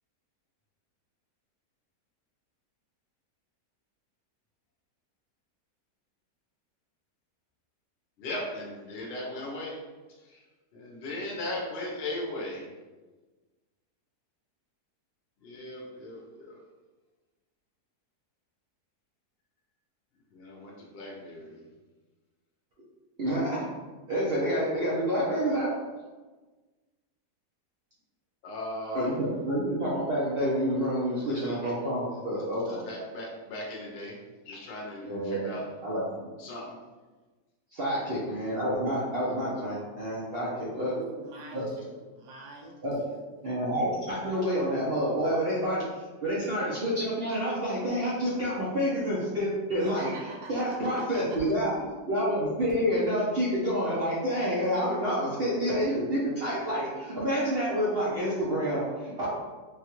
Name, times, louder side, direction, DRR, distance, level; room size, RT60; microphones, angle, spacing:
voice 1, 8.2-9.8 10.3-10.4 10.7-12.7 15.4-16.6 20.3-21.6 28.4-29.1 31.2-31.6 32.7-34.2 34.5-35.6 36.4-36.7, left 1 dB, 50° left, -3 dB, 0.8 m, -37 dB
voice 2, 23.2-23.6 24.1-25.7 28.9-32.8 35.0-35.5 35.8-36.3 37.7-40.9 41.5-41.7 42.8-43.0 43.4-45.8 46.2-50.1 50.5-59.3, equal, 65° right, -7 dB, 0.6 m, -28 dB
voice 3, 40.9-42.8 43.1-43.2 49.8-50.5 50.8-51.4, right 3 dB, 85° right, -2 dB, 1.3 m, -44 dB
3.3 x 2.3 x 2.9 m, 1.3 s
omnidirectional pair, 1.7 m